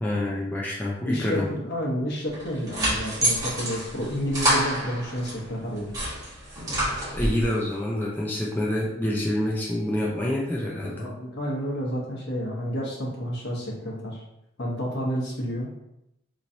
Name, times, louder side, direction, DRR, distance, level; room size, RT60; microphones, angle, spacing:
voice 1, 0.0-1.5 7.1-11.1, left 1 dB, 10° left, -4 dB, 0.4 m, -27 dB
voice 2, 1.0-5.9 10.9-14.2 14.6-15.7, equal, 55° left, -3 dB, 1.1 m, -30 dB
sound 1, 2.3-5.4 5.8-7.5, right 1 dB, 20° right, 1.3 m, -27 dB
4.0 x 3.0 x 2.7 m, 0.83 s
head